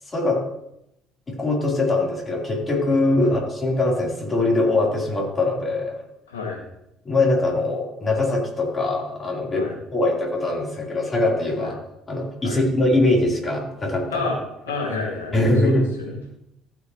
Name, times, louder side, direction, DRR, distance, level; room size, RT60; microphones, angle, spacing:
voice 1, 0.1-0.4 1.3-6.0 7.0-11.8 12.1-14.3 15.3-15.9, left 2 dB, 30° left, -2 dB, 4.3 m, -22 dB
voice 2, 6.3-6.6 9.5-9.7 11.6-11.7 12.4-12.6 14.1-14.4 14.6-16.2, left 4 dB, 85° left, -1 dB, 2.3 m, -30 dB
15.0 x 6.8 x 3.3 m, 0.82 s
hypercardioid pair, 55°, 0 cm